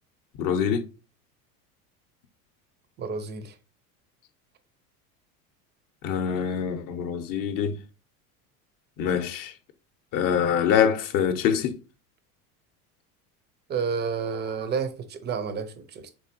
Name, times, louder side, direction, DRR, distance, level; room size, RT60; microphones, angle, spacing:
voice 1, 0.4-0.8 6.0-7.8 9.0-9.5 10.1-11.7, left 8 dB, 45° left, 0.7 m, -24 dB
voice 2, 3.0-3.6 13.7-16.1, right 6 dB, 25° right, 0.5 m, -30 dB
3.6 x 3.4 x 2.6 m
hypercardioid pair, 85°, 45 cm